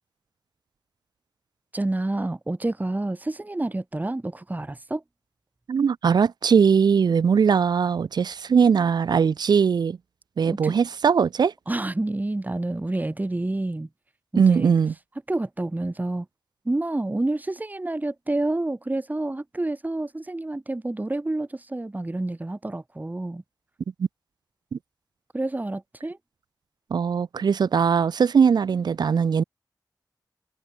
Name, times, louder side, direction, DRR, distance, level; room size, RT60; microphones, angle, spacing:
voice 1, 1.7-5.0 10.4-10.7 11.7-13.9 14.3-14.7 15.3-16.3 16.6-23.4 25.3-26.2, right 2 dB, 25° right, 1.5 m, -28 dB
voice 2, 5.7-10.0 10.4-11.5 14.4-14.9 24.7-24.8 26.9-29.4, right 6 dB, 80° right, 0.4 m, -20 dB
wide cardioid pair, 85°, 7 cm